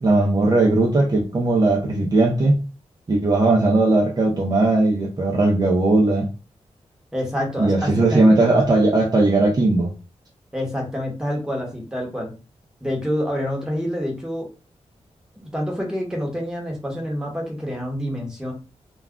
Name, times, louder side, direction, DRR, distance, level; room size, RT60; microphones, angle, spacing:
voice 1, 0.0-2.6 3.1-6.3 7.6-9.9, right 2 dB, 35° right, -2 dB, 0.5 m, -18 dB
voice 2, 7.1-8.2 10.5-12.3 12.8-14.5 15.5-18.5, equal, 5° right, -1 dB, 0.9 m, -27 dB
2.2 x 2.2 x 3.6 m, 0.32 s
wide cardioid pair, 135°, 12 cm